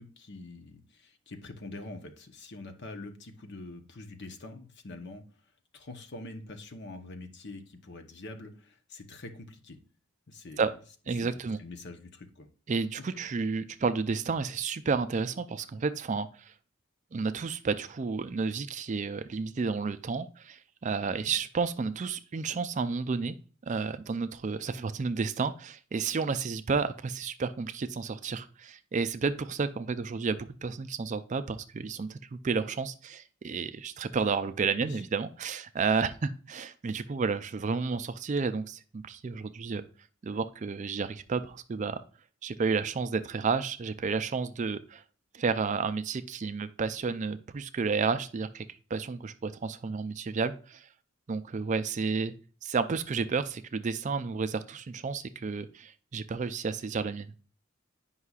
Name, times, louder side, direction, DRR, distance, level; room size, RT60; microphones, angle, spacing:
voice 1, 0.0-5.2 5.7-9.8 10.3-10.6 11.1-12.5 21.1-21.2 34.8-35.0, left 2 dB, 50° left, 6 dB, 0.9 m, -45 dB
voice 2, 11.1-11.6 12.7-16.5 17.1-23.4 23.7-39.8 40.2-42.0 42.4-45.0 45.3-48.7 48.9-50.9 51.3-52.3 52.6-57.3, right 5 dB, 35° right, 11 dB, 0.3 m, -31 dB
9.6 x 5.5 x 2.4 m, 0.40 s
head